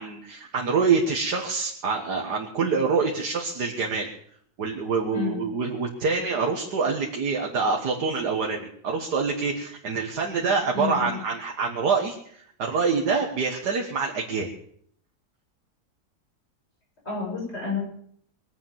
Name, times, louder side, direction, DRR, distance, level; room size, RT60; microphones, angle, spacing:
voice 1, 0.0-4.1 4.6-14.5, right 4 dB, 85° right, 0 dB, 2.1 m, -26 dB
voice 2, 10.7-11.2 17.0-17.8, left 5 dB, 40° left, -4 dB, 7.5 m, -30 dB
21.5 x 8.4 x 7.4 m, 0.65 s
omnidirectional pair, 1.7 m